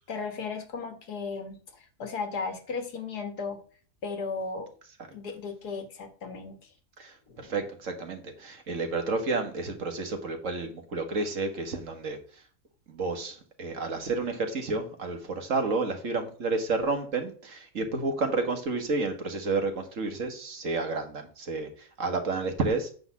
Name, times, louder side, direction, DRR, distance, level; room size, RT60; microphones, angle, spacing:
voice 1, 0.0-3.6 4.0-4.7 5.1-6.7 7.3-7.5, left 4 dB, 80° left, 7 dB, 1.9 m, -36 dB
voice 2, 7.4-12.4 12.9-22.9, right 3 dB, 55° right, 5 dB, 1.7 m, -30 dB
8.8 x 4.0 x 7.1 m, 0.43 s
omnidirectional pair, 1.7 m